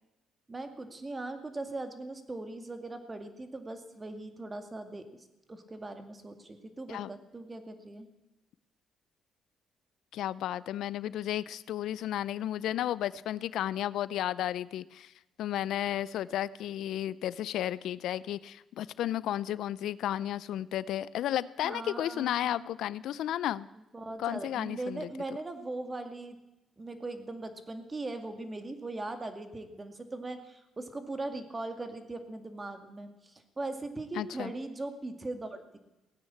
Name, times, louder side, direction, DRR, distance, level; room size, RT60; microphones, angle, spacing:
voice 1, 0.5-5.0 5.5-8.1 21.6-22.6 23.9-26.3 26.8-35.8, right 2 dB, 25° right, 7 dB, 2.2 m, -40 dB
voice 2, 10.1-15.1 15.4-23.7 24.2-25.1 34.1-34.5, left 12 dB, 80° left, 19 dB, 0.5 m, -33 dB
17.0 x 9.7 x 8.5 m, 0.99 s
cardioid pair, 90°, 0 cm